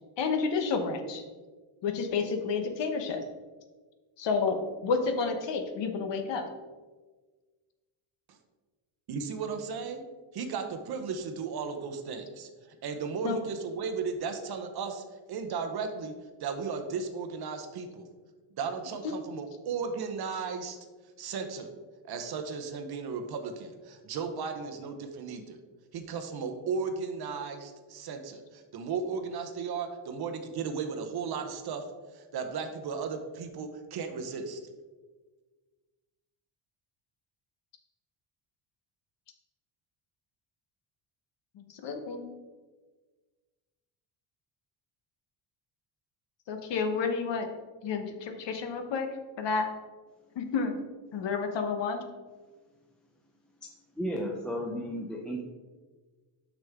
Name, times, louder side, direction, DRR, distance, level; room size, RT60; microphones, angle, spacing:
voice 1, 0.2-1.2 1.8-3.2 4.2-6.4 13.2-13.4 41.5-42.2 46.5-47.5 47.8-49.1 49.4-49.7 50.4-50.8 51.1-52.0, left 5 dB, 60° left, 6 dB, 1.0 m, -30 dB
voice 2, 9.1-10.0 10.3-15.0 15.3-16.1 16.4-18.1 18.6-20.8 21.2-21.7 22.0-25.6 25.9-31.8 32.1-34.6, right 5 dB, 50° right, 6 dB, 0.9 m, -35 dB
voice 3, 54.0-55.4, equal, ahead, 0 dB, 0.4 m, -33 dB
6.3 x 6.2 x 3.5 m, 1.4 s
cardioid pair, 135°, 49 cm